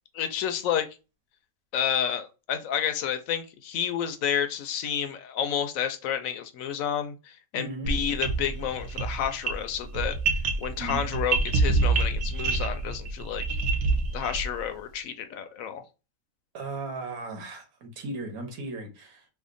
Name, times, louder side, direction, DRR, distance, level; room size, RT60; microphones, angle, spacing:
voice 1, 0.1-0.9 1.7-10.2 10.6-13.4 14.1-15.8, left 9 dB, 75° left, 0.9 m, -30 dB
voice 2, 7.6-7.9 10.7-11.1 16.5-19.3, right 2 dB, 85° right, 1.4 m, -36 dB
sound 1, 7.8-14.6, right 3 dB, 70° right, 1.0 m, -27 dB
3.4 x 2.1 x 3.7 m
omnidirectional pair, 1.5 m